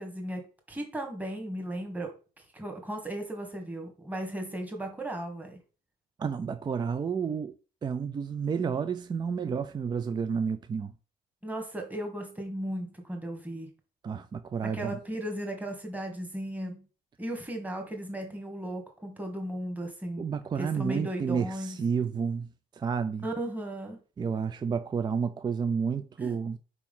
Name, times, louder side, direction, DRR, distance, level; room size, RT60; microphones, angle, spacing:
voice 1, 0.0-2.1 2.5-5.6 11.4-13.7 14.6-16.9 17.2-21.8 23.2-24.0 26.2-26.4, right 1 dB, 10° right, 1.8 m, -36 dB
voice 2, 6.2-7.6 7.8-10.9 14.0-15.0 20.2-22.5 22.7-23.3 24.2-26.6, right 6 dB, 25° right, 0.4 m, -30 dB
4.7 x 4.7 x 5.5 m
cardioid pair, 110°, 17 cm